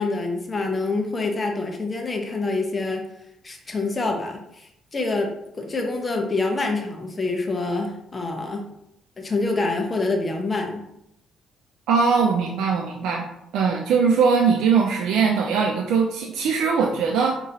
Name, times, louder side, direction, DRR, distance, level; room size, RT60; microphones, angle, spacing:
voice 1, 0.0-3.0 3.4-5.3 5.6-8.6 9.2-10.8, left 3 dB, 30° left, 2 dB, 0.9 m, -26 dB
voice 2, 11.9-13.2 13.5-17.3, right 5 dB, 85° right, 1 dB, 0.4 m, -20 dB
5.1 x 2.9 x 2.8 m, 0.82 s
cardioid pair, 90°, 0 cm